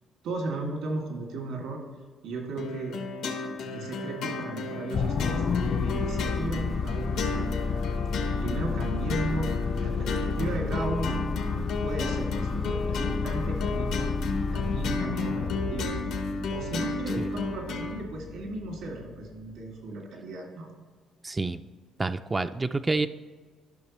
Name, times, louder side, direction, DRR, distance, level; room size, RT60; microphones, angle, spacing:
voice 1, 0.2-1.8 2.2-3.0 3.6-7.8 8.4-11.2 11.8-14.0 14.5-16.2 16.5-20.7, right 2 dB, 80° right, 0 dB, 2.3 m, -35 dB
sound 1, 2.6-18.0, left 3 dB, 80° left, 1.0 m, -33 dB
sound 2, 4.9-19.4, left 5 dB, 50° left, 0.4 m, -31 dB
voice 2, 21.2-21.6 22.0-23.1, right 3 dB, 20° right, 9 dB, 0.3 m, -28 dB
11.5 x 5.9 x 3.1 m, 1.5 s
cardioid pair, 90°, 0 cm